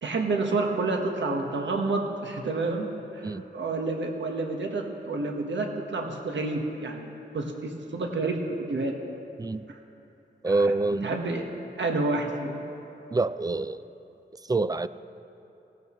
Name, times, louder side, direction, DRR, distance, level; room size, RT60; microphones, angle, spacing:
voice 1, 0.0-9.0 9.7-9.8 10.5-10.7 11.0-11.5 11.8-12.6, right 3 dB, 75° right, 2 dB, 1.3 m, -29 dB
voice 2, 10.4-11.1 13.1-13.8 14.4-14.9, right 3 dB, 20° right, 15 dB, 0.4 m, -26 dB
18.0 x 17.0 x 3.1 m, 2.9 s
wide cardioid pair, 70°, 19 cm